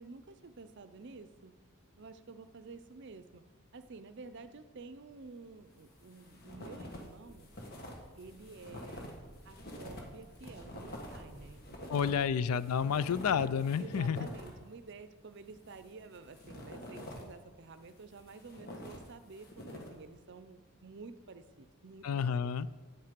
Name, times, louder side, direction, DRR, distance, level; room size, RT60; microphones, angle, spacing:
voice 1, 0.0-1.6 2.0-3.4 3.7-7.5 8.2-9.1 9.4-12.3 13.8-22.5, right 4 dB, 55° right, 11 dB, 0.6 m, -51 dB
sound 1, 5.7-7.1 7.3-14.7 15.5-17.4 17.9-20.1, left 1 dB, 45° left, 1.5 m, -47 dB
sound 2, 7.2-14.2, equal, 5° right, 2.1 m, -57 dB
voice 2, 11.9-14.2 22.0-22.7, left 7 dB, 85° left, 16 dB, 0.4 m, -30 dB
8.9 x 8.5 x 5.2 m, 1.3 s
head